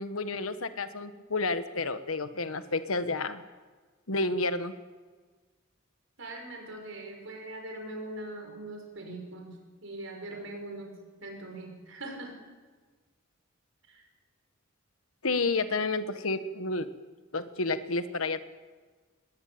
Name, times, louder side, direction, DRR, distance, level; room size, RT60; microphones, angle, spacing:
voice 1, 0.0-3.4 4.1-4.7 15.2-16.9 17.3-18.4, left 3 dB, 85° left, 10 dB, 1.3 m, -30 dB
voice 2, 6.2-9.6 9.8-10.9 11.2-12.4 13.9-14.1, right 2 dB, 70° right, 3 dB, 6.1 m, -41 dB
21.5 x 20.5 x 8.7 m, 1.4 s
head